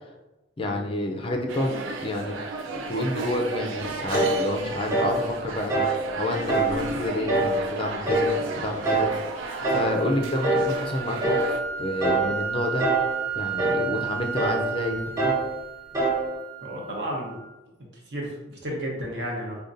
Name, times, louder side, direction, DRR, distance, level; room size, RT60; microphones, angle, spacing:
voice 1, 0.6-1.8 2.0-2.3 2.9-5.9 6.2-9.1 9.4-12.9 13.3-15.3, left 1 dB, 25° left, 2 dB, 0.3 m, -29 dB
sound 1, 1.5-11.6, right 3 dB, 80° right, 0.4 m, -34 dB
sound 2, 4.1-4.4 4.9-5.2 5.7-6.0 6.5-6.8 7.3-7.6 8.0-8.4 8.8-9.1 9.6-9.9 10.4-10.7 11.2-11.5 12.0-12.3 12.8-13.1 13.6-13.9 14.4-14.7 15.2-15.5 15.9-16.3, right 2 dB, 20° right, 0.6 m, -23 dB
sound 3, 9.5-17.5, right 7 dB, 40° right, 1.0 m, -34 dB
voice 2, 16.6-17.4 18.1-19.6, equal, 60° right, -1 dB, 0.9 m, -33 dB
5.0 x 2.2 x 2.5 m, 1.0 s
head